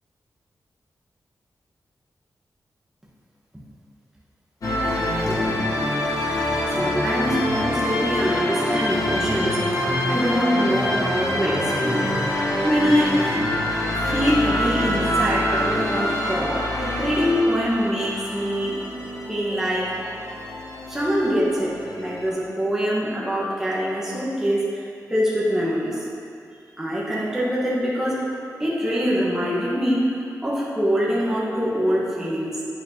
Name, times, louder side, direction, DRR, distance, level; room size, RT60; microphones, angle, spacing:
sound 1, 4.6-22.3, left 1 dB, 70° left, 1.1 m, -25 dB
voice 1, 5.2-5.7 6.7-9.8 10.1-12.0 12.6-13.2 13.9-16.6 17.0-18.8 19.3-19.9 20.9-26.0 26.8-28.2 28.6-30.1 30.4-32.6, equal, 10° right, -8 dB, 1.2 m, -24 dB
9.2 x 4.4 x 2.8 m, 2.5 s
wide cardioid pair, 130°, 6 cm